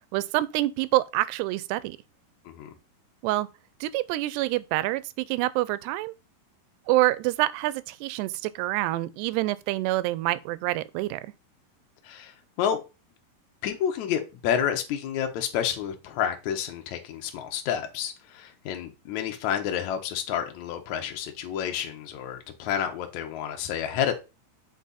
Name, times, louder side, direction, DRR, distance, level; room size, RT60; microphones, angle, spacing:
voice 1, 0.1-2.0 3.2-3.5 3.8-6.1 6.9-11.2, right 17 dB, 85° right, 2.7 m, -26 dB
voice 2, 12.0-12.8 13.6-24.1, left 9 dB, 65° left, 2.0 m, -29 dB
8.4 x 4.3 x 4.1 m
omnidirectional pair, 4.7 m